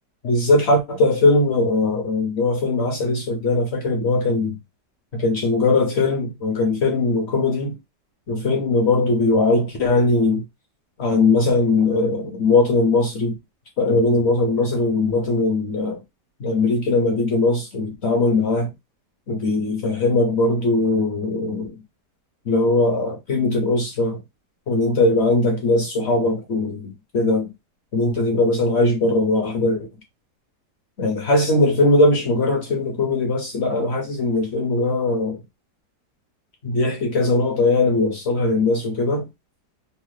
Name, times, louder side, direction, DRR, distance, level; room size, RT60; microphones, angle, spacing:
voice 1, 0.2-4.6 5.1-7.8 8.3-10.4 11.0-13.3 13.8-16.0 16.4-18.7 19.3-21.8 22.5-24.2 24.7-27.5 27.9-29.9 31.0-35.4 36.6-39.3, left 2 dB, 55° left, 0.7 m, -20 dB
3.2 x 2.0 x 3.1 m
omnidirectional pair, 1.8 m